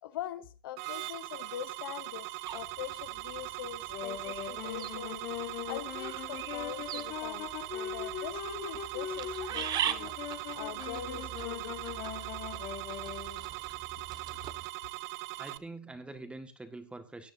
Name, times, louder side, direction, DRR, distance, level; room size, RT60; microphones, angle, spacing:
voice 1, 0.0-5.2 5.7-10.1 10.5-11.8 14.4-14.5, left 11 dB, 75° left, 0.9 m, -43 dB
sound 1, 0.8-15.6, right 20 dB, 55° right, 0.7 m, -41 dB
sound 2, 2.4-14.7, right 10 dB, 35° right, 0.9 m, -42 dB
Wind instrument woodwind instrument, 3.8-13.5, left 10 dB, 55° left, 2.9 m, -41 dB
voice 2, 15.4-17.3, right 2 dB, 10° right, 1.8 m, -45 dB
16.5 x 9.9 x 2.7 m
hypercardioid pair, 115°, 12 cm